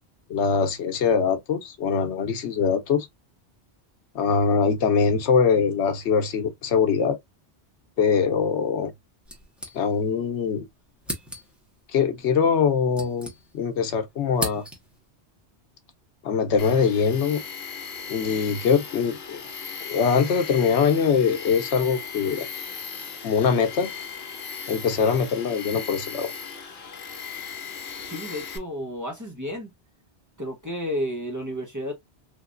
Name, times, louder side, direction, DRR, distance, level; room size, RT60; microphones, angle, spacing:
voice 1, 0.3-3.1 4.1-7.2 8.0-8.9 9.7-10.7 11.9-13.3 13.5-14.6 16.2-17.4 18.1-19.4 19.8-22.4 23.2-23.9 24.7-26.3, left 6 dB, 90° left, 1.0 m, -22 dB
sound 1, 9.2-10.3 10.5-10.6 11.0-11.7 12.5-13.8 14.1-15.1, equal, ahead, 1.1 m, -36 dB
Tools, 16.6-28.6, left 6 dB, 65° left, 1.0 m, -37 dB
voice 2, 28.1-29.7 30.4-31.9, equal, 15° right, 1.1 m, -31 dB
3.6 x 2.9 x 2.4 m
omnidirectional pair, 1.1 m